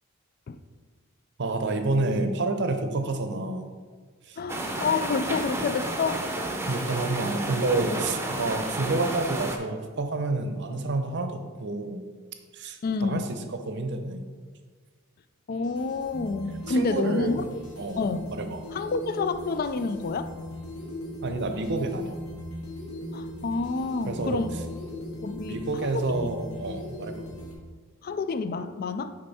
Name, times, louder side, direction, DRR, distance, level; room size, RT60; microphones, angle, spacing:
voice 1, 1.4-3.7 4.2-4.4 6.7-12.0 12.5-14.3 16.7-17.4 17.8-18.6 21.2-22.2 24.1-24.4 25.4-27.2, right 2 dB, 55° right, 6 dB, 0.7 m, -29 dB
voice 2, 4.4-6.2 12.8-13.3 15.5-17.4 18.0-18.3 18.7-20.3 23.1-24.6 25.2-26.0 28.0-29.2, left 4 dB, 45° left, 12 dB, 0.3 m, -28 dB
sound 1, 4.5-9.6, right 1 dB, 10° right, 0.7 m, -31 dB
sound 2, 15.5-27.5, left 1 dB, 85° left, 1.9 m, -39 dB
6.8 x 5.4 x 4.1 m, 1.5 s
head